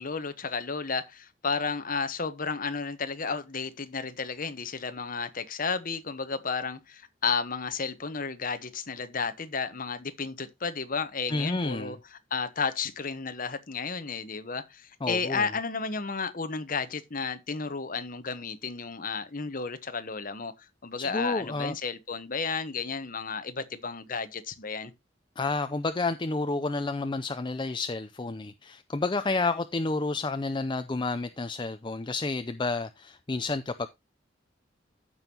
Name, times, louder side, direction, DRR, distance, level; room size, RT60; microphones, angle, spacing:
voice 1, 0.0-24.9, left 5 dB, 45° left, 1.1 m, -33 dB
voice 2, 11.3-11.9 15.0-15.5 21.0-21.8 25.4-33.9, left 3 dB, 25° left, 0.5 m, -30 dB
15.0 x 5.4 x 2.9 m
head